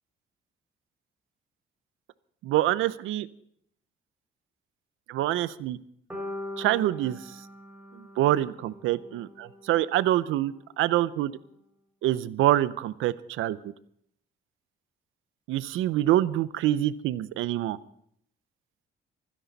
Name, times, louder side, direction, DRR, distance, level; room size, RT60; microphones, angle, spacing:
voice 1, 2.4-3.3 5.1-5.8 6.6-7.2 8.2-11.3 12.0-13.6 15.5-17.8, right 14 dB, 90° right, 16 dB, 0.7 m, -25 dB
sound 1, 6.1-10.2, left 1 dB, 5° right, 3.5 m, -42 dB
25.5 x 10.0 x 4.1 m, 0.69 s
cardioid pair, 90°, 20 cm